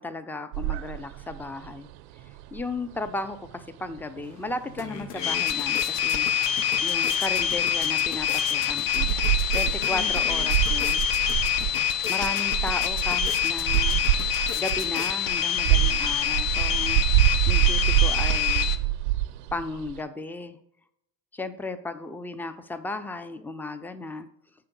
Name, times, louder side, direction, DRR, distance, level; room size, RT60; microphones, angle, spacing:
voice 1, 0.0-1.9 2.3-6.3 6.8-11.0 12.1-14.0 14.6-18.8 19.5-20.6 21.3-24.3, left 2 dB, 5° left, 11 dB, 0.4 m, -35 dB
sound 1, 0.5-20.0, right 16 dB, 85° right, 0.6 m, -27 dB
sound 2, 4.2-4.3 4.6-15.5, left 7 dB, 90° left, 0.7 m, -40 dB
sound 3, 5.2-18.8, left 9 dB, 45° left, 0.6 m, -26 dB
6.9 x 3.7 x 5.2 m, 0.77 s
hypercardioid pair, 70°, 48 cm